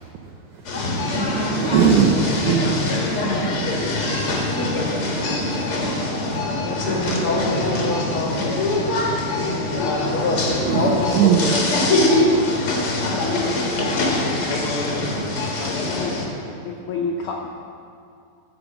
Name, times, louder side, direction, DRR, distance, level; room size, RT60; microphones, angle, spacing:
voice 1, 0.2-1.1 1.6-2.8 3.4-4.0 7.1-7.2 8.2-8.3 10.2-10.3 10.6-11.6 15.1-15.3, right 7 dB, 80° right, 0 dB, 1.7 m, -21 dB
sound 1, 0.6-16.2, left 2 dB, 55° left, 1.6 m, -22 dB
voice 2, 0.9-1.8 6.8-10.7, left 1 dB, 15° right, -7 dB, 0.8 m, -41 dB
voice 3, 15.1-17.5, left 4 dB, 80° left, -1 dB, 1.7 m, -31 dB
14.5 x 6.0 x 7.0 m, 2.4 s
omnidirectional pair, 4.5 m